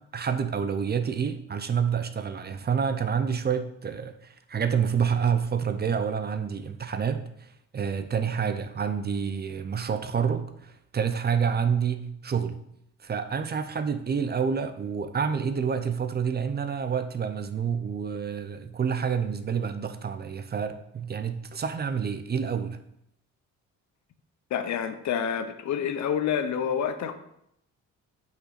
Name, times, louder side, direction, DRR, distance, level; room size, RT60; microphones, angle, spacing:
voice 1, 0.1-7.5 7.7-12.6 13.0-22.8, right 7 dB, 35° right, 9 dB, 0.6 m, -28 dB
voice 2, 24.5-27.2, left 8 dB, 65° left, 9 dB, 0.8 m, -28 dB
6.3 x 5.2 x 4.1 m, 0.76 s
cardioid pair, 90°, 30 cm